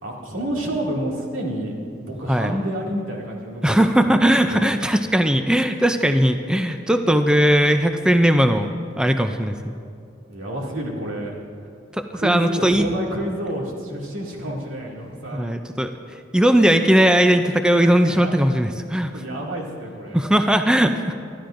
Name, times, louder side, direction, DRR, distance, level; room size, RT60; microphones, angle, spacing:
voice 1, 0.0-1.7 2.0-4.7 10.3-11.3 12.1-15.5 17.9-18.3 18.9-20.3, right 1 dB, 85° right, -3 dB, 2.4 m, -29 dB
voice 2, 3.6-9.7 12.0-12.9 15.3-15.9 16.3-19.1 20.1-21.1, equal, 5° right, 7 dB, 0.4 m, -18 dB
25.0 x 13.0 x 2.6 m, 2.4 s
head